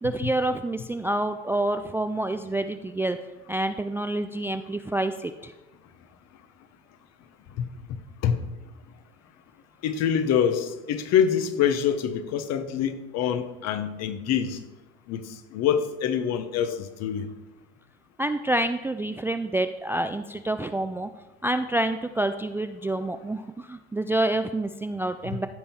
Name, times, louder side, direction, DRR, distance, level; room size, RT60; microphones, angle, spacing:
voice 1, 0.0-3.2 3.5-5.5 18.2-21.1 21.4-25.5, right 1 dB, 5° right, 9 dB, 0.3 m, -27 dB
voice 2, 9.8-14.6 15.1-17.3, left 8 dB, 50° left, 10 dB, 1.2 m, -25 dB
15.0 x 5.4 x 4.5 m, 1.1 s
hypercardioid pair, 85°, 33 cm